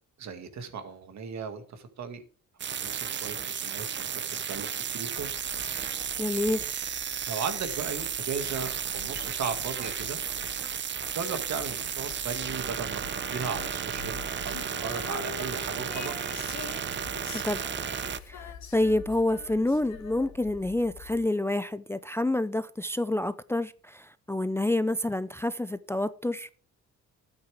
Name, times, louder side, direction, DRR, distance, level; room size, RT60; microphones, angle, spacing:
voice 1, 0.2-2.2 2.8-4.1 4.5-5.3 7.3-10.2 11.1-16.3, right 6 dB, 65° right, 2.1 m, -36 dB
sound 1, 2.6-18.2, right 8 dB, 40° right, 0.7 m, -33 dB
sound 2, 5.2-21.3, left 6 dB, 85° left, 2.7 m, -49 dB
voice 2, 6.2-6.7 17.3-17.7 18.3-26.5, left 1 dB, 10° left, 0.5 m, -28 dB
Female singing, 13.0-20.5, left 8 dB, 65° left, 2.3 m, -45 dB
12.5 x 8.9 x 3.5 m
cardioid pair, 90°, 30 cm